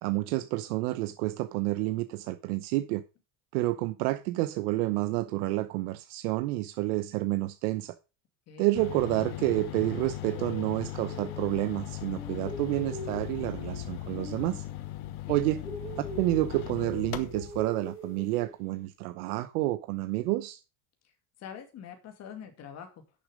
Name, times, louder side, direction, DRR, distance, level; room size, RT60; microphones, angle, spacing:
voice 1, 0.0-3.0 3.5-8.0 8.6-14.6 15.3-15.6 16.2-20.6, right 18 dB, 80° right, 0.9 m, -29 dB
voice 2, 8.5-8.8 15.0-15.5 21.4-23.1, left 8 dB, 35° left, 2.5 m, -45 dB
sound 1, 8.7-17.7, left 14 dB, 75° left, 1.3 m, -38 dB
sound 2, 9.0-11.8 12.1-15.0 15.3-18.8, left 1 dB, 10° left, 3.8 m, -44 dB
10.5 x 6.9 x 5.1 m
cardioid pair, 165°, 44 cm